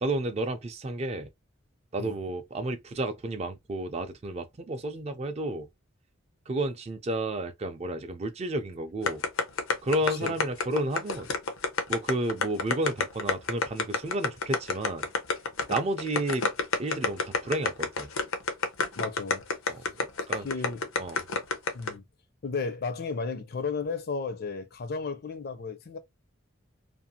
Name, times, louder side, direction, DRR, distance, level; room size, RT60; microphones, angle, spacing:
voice 1, 0.0-1.3 1.9-5.7 6.5-9.2 9.8-11.3 11.9-15.1 15.7-16.4 16.8-18.1 19.7-20.5 21.0-21.2, right 1 dB, 30° right, 0.4 m, -31 dB
sound 1, 9.1-21.9, left 4 dB, 90° left, 0.7 m, -27 dB
voice 2, 19.0-19.5 20.3-20.9 21.7-22.0 22.4-26.0, left 4 dB, 50° left, 0.4 m, -34 dB
2.5 x 2.4 x 2.7 m
head